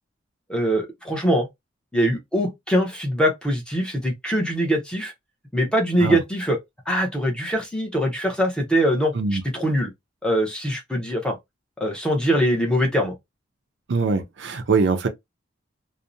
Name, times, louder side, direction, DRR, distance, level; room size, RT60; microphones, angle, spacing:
voice 1, 0.5-1.5 1.9-5.1 5.5-6.6 6.9-9.9 10.2-11.4 11.8-13.1, equal, 5° left, 0.6 m, -22 dB
voice 2, 13.9-15.1, right 4 dB, 65° right, 0.4 m, -22 dB
2.6 x 2.0 x 2.5 m
head